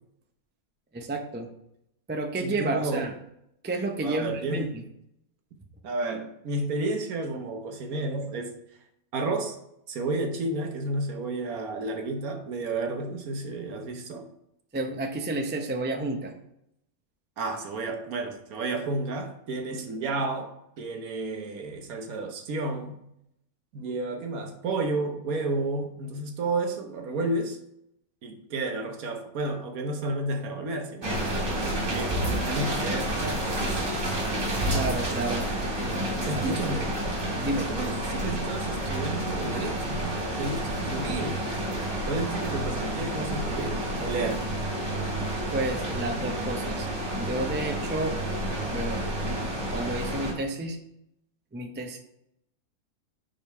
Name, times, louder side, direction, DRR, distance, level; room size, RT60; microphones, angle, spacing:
voice 1, 0.9-1.5 2.1-3.1 3.6-4.8 14.7-16.3 34.7-35.5 36.3-36.6 37.4-37.7 45.5-46.9 47.1-48.2 48.7-49.1 49.7-50.8 51.5-52.0, right 2 dB, 15° right, 3 dB, 0.3 m, -30 dB
voice 2, 2.4-3.1 4.0-4.7 5.8-8.5 9.1-9.6 9.9-14.3 17.4-23.0 23.7-27.6 28.2-33.9 36.3-36.9 37.7-44.5, right 2 dB, 80° right, 5 dB, 1.4 m, -32 dB
sound 1, 31.0-50.3, right 1 dB, 60° right, 2.5 m, -30 dB
5.1 x 5.1 x 4.4 m, 0.77 s
omnidirectional pair, 1.5 m